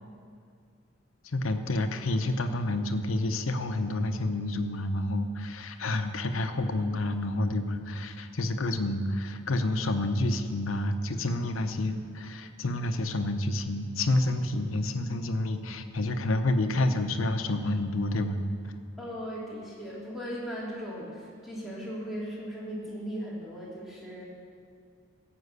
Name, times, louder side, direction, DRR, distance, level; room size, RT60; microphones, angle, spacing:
voice 1, 1.2-18.4, left 2 dB, 85° left, 7 dB, 0.8 m, -29 dB
voice 2, 19.0-24.2, equal, ahead, -7 dB, 2.5 m, -38 dB
15.0 x 6.1 x 8.1 m, 2.3 s
head